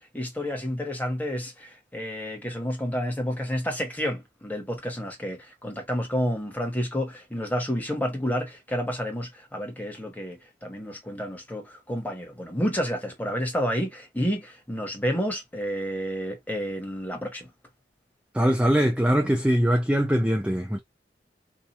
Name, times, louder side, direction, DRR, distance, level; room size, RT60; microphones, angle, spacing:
voice 1, 0.1-17.5, equal, 10° left, 1.1 m, -30 dB
voice 2, 18.3-20.8, equal, 5° right, 0.4 m, -22 dB
2.8 x 2.3 x 4.0 m
head